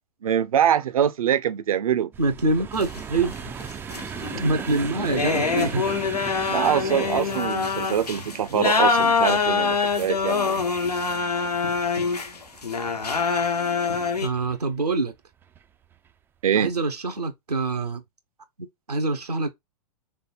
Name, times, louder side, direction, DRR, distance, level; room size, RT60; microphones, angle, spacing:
voice 1, 0.2-2.1 6.5-10.7 16.4-16.7, right 9 dB, 65° right, 0.7 m, -24 dB
sound 1, 2.1-13.2 13.9-14.6 15.4-15.6 15.9-16.1, right 7 dB, 10° right, 0.3 m, -38 dB
voice 2, 2.2-3.3 4.4-6.0 8.8-8.9 14.2-15.1 16.6-18.0 18.9-19.5, right 3 dB, 90° right, 1.0 m, -25 dB
sound 2, 2.8-14.3, left 5 dB, 85° left, 1.1 m, -25 dB
3.6 x 3.4 x 4.3 m
figure-of-eight pair, 110°, 20 cm